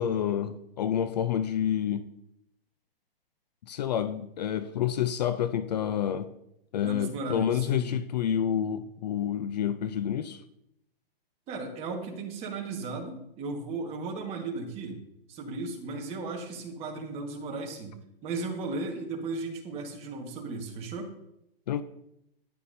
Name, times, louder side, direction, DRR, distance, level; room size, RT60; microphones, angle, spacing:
voice 1, 0.0-2.1 3.7-6.3 6.7-10.4 21.7-21.8, left 9 dB, 45° left, 0.5 m, -28 dB
voice 2, 6.8-7.9 11.5-15.0 15.3-18.0 18.2-21.1, right 3 dB, 20° right, 1.5 m, -35 dB
13.0 x 10.5 x 2.7 m
hypercardioid pair, 150°, 30 cm